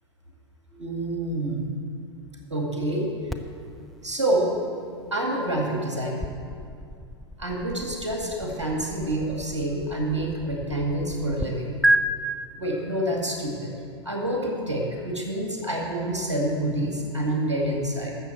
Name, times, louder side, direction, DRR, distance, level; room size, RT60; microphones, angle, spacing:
voice 1, 0.7-1.7 2.5-3.1 4.0-4.6 5.1-6.4 7.4-11.7 12.5-13.7 14.0-18.1, right 1 dB, 80° right, 0 dB, 2.0 m, -27 dB
sound 1, 3.3-11.5 11.8-12.0, right 1 dB, ahead, 0.5 m, -32 dB
12.5 x 7.1 x 7.6 m, 2.3 s
figure-of-eight pair, 95°, 15 cm